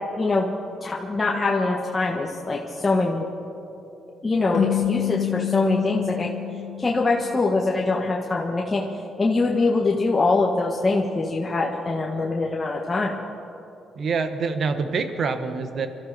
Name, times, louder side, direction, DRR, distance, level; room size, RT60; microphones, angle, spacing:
voice 1, 0.2-0.5 0.8-3.3 4.2-6.3 6.8-8.8 9.2-13.1, left 3 dB, 25° left, -2 dB, 1.5 m, -23 dB
sound 1, 4.5-7.7, left 12 dB, 70° left, 2.2 m, -28 dB
voice 2, 14.0-15.9, right 4 dB, 55° right, 8 dB, 1.3 m, -26 dB
24.5 x 13.5 x 4.3 m, 2.8 s
cardioid pair, 90°, 0 cm